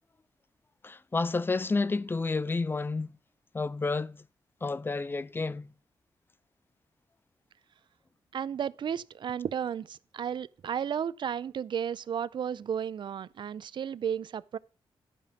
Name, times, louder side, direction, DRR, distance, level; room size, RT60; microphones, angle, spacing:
voice 1, 0.8-3.2 3.5-4.3 4.6-5.7, left 3 dB, 25° left, 0.4 m, -30 dB
voice 2, 8.3-14.6, right 8 dB, 55° right, 0.4 m, -33 dB
11.5 x 5.1 x 5.8 m
wide cardioid pair, 120°, 9 cm